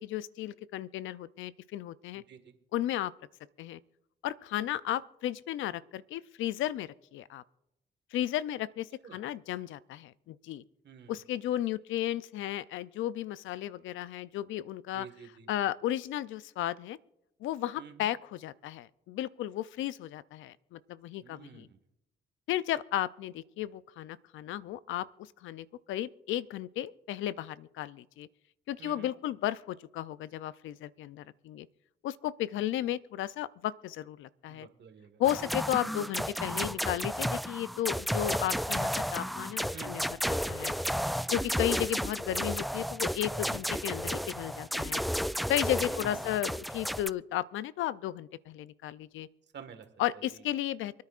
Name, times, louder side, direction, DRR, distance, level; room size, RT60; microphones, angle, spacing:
voice 1, 0.0-2.2 2.7-3.1 3.6-3.8 4.2-7.4 8.1-10.6 11.1-17.0 17.4-21.7 22.5-25.1 25.4-28.3 28.7-31.7 32.0-34.7 35.2-40.7 41.3-45.0 45.5-49.3 50.0-51.0, left 12 dB, 80° left, 17 dB, 0.5 m, -34 dB
voice 2, 2.1-2.5 9.0-9.2 10.8-11.1 14.9-15.5 17.8-18.1 21.2-21.7 28.8-29.1 34.5-35.1 35.4-35.5 39.7-40.0 43.5-43.8 45.8-46.2 49.5-49.8, right 7 dB, 60° right, 6 dB, 1.7 m, -49 dB
sound 1, 35.2-47.1, equal, ahead, 0.3 m, -32 dB
28.0 x 9.5 x 2.5 m, 0.87 s
supercardioid pair, 60°, 20 cm